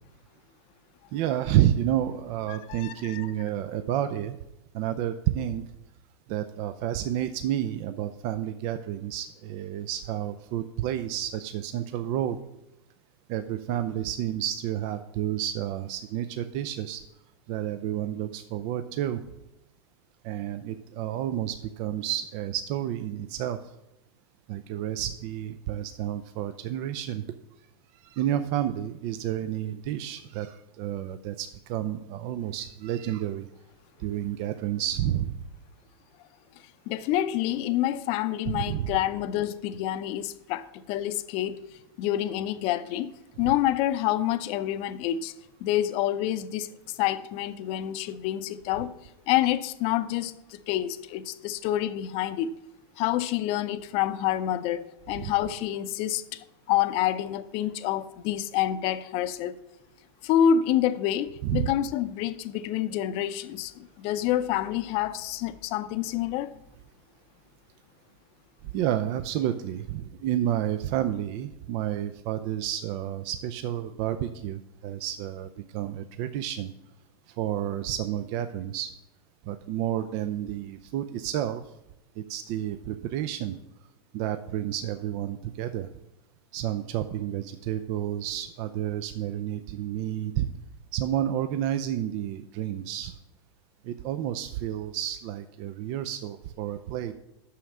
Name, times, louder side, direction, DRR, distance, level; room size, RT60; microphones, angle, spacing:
voice 1, 1.1-4.4 4.7-5.6 6.3-12.4 13.3-17.0 17.5-19.2 20.2-23.6 24.5-27.2 28.0-33.5 34.0-35.4 38.5-39.0 43.4-43.5 55.2-55.3 61.4-61.7 68.7-76.7 77.4-78.9 79.5-81.6 82.2-83.6 84.1-85.9 86.5-90.5 90.9-93.1 93.8-97.1, right 11 dB, 50° right, 10 dB, 0.5 m, -30 dB
voice 2, 2.5-3.2 36.9-41.6 42.0-43.1 43.4-45.3 45.6-48.9 49.3-52.5 53.0-59.5 60.2-66.5, left 11 dB, 45° left, 12 dB, 0.6 m, -28 dB
6.4 x 5.7 x 7.2 m, 0.88 s
hypercardioid pair, 105°, 14 cm